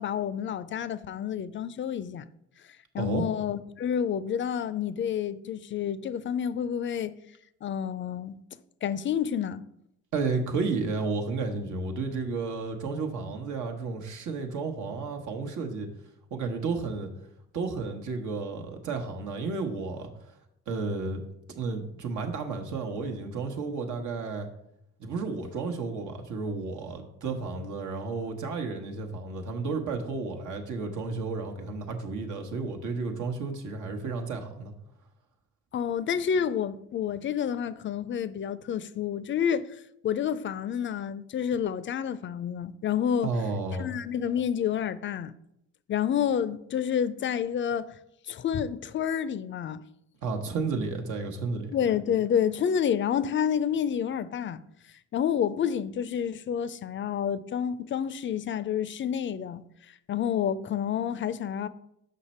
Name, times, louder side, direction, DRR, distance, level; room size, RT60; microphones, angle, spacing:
voice 1, 0.0-2.3 2.9-7.1 7.6-8.4 8.8-9.6 35.7-39.7 40.0-43.4 43.8-45.3 45.9-47.9 48.3-49.8 51.7-54.6 55.1-59.6 60.1-61.7, left 8 dB, 40° left, 0.4 m, -29 dB
voice 2, 10.1-15.9 16.3-17.1 17.5-20.1 20.7-21.2 21.6-24.5 25.0-34.7 43.2-43.9 50.2-51.7, right 4 dB, 75° right, 1.1 m, -32 dB
6.5 x 5.3 x 4.3 m
cardioid pair, 90°, 30 cm